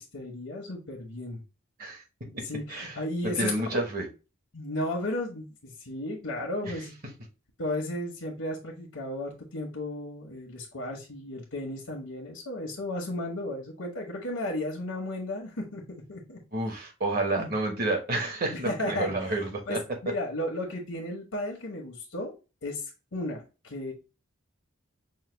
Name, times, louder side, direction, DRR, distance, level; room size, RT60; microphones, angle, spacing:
voice 1, 0.0-1.4 2.3-3.5 4.5-6.9 7.6-15.8 16.1-16.4 17.3-17.5 18.5-19.1 19.7-22.3 22.6-23.9, left 1 dB, 85° left, 1.1 m, -34 dB
voice 2, 2.3-3.0 3.2-4.1 6.6-6.7 16.5-19.8, right 2 dB, 45° right, 1.1 m, -30 dB
5.6 x 2.2 x 3.2 m
head